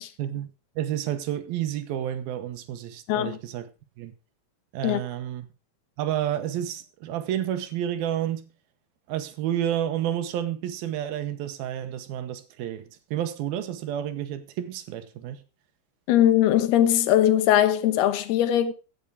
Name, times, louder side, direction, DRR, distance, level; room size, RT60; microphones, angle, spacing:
voice 1, 0.2-3.7 4.0-4.1 4.7-5.5 6.0-8.5 9.1-15.4, right 11 dB, 75° right, 2.8 m, -30 dB
voice 2, 3.1-3.4 4.8-5.0 16.1-18.7, left 11 dB, 80° left, 3.0 m, -20 dB
15.5 x 8.4 x 5.0 m
omnidirectional pair, 4.5 m